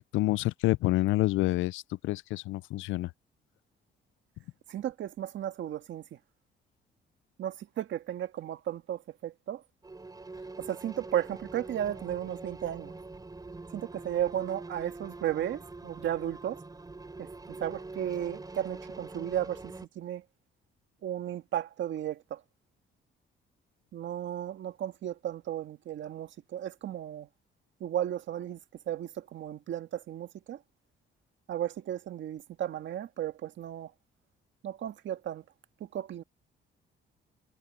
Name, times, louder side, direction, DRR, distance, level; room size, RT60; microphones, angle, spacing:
voice 1, 0.0-3.1, left 18 dB, 85° left, 0.4 m, -28 dB
voice 2, 4.7-6.0 7.4-9.6 10.6-12.9 13.7-16.6 17.2-17.3 17.6-20.2 21.0-22.4 23.9-27.3 27.8-28.6 28.9-30.6 31.5-33.9 34.6-35.4 35.8-36.2, right 11 dB, 70° right, 1.7 m, -34 dB
sound 1, 9.8-19.9, right 3 dB, 20° right, 4.0 m, -44 dB
cardioid pair, 90°, 20 cm